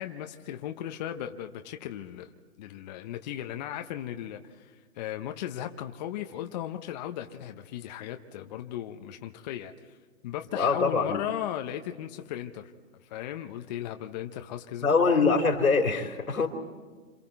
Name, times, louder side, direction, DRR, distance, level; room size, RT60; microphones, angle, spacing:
voice 1, 0.0-2.3 2.6-10.0 10.2-12.7 13.1-14.9, left 11 dB, 30° left, 6 dB, 0.9 m, -37 dB
voice 2, 10.5-11.2 14.8-16.5, left 4 dB, 90° left, 4 dB, 3.3 m, -24 dB
28.5 x 27.0 x 4.5 m, 1.4 s
hypercardioid pair, 145°, 41 cm